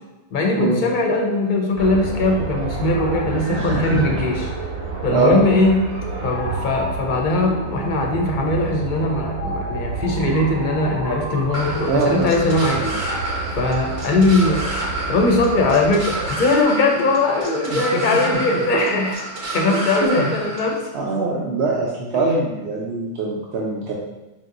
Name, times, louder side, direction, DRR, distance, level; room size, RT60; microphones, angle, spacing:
voice 1, 0.3-4.4 5.0-5.8 6.2-14.6 15.1-19.2 19.5-20.8, left 2 dB, 55° left, 1 dB, 0.8 m, -20 dB
sound 1, 1.8-16.3, right 3 dB, 65° right, 0.9 m, -29 dB
voice 2, 3.5-4.2 5.1-5.4 11.9-12.3 17.7-18.0 18.3-18.6 20.0-20.3 20.9-23.9, right 3 dB, 85° right, -5 dB, 0.9 m, -22 dB
sound 2, 11.5-20.7, right 2 dB, 35° right, 0.6 m, -29 dB
5.3 x 2.7 x 2.5 m, 1.1 s
omnidirectional pair, 1.1 m